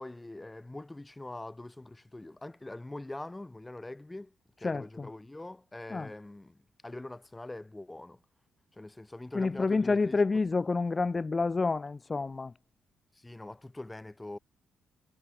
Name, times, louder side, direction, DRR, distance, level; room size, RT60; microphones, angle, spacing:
voice 1, 0.0-8.2 8.7-10.2 13.1-14.4, left 2 dB, 15° left, 2.4 m, -43 dB
voice 2, 4.6-5.1 5.9-6.1 9.3-12.5, left 3 dB, 30° left, 1.3 m, -29 dB
cardioid pair, 75°, 0 cm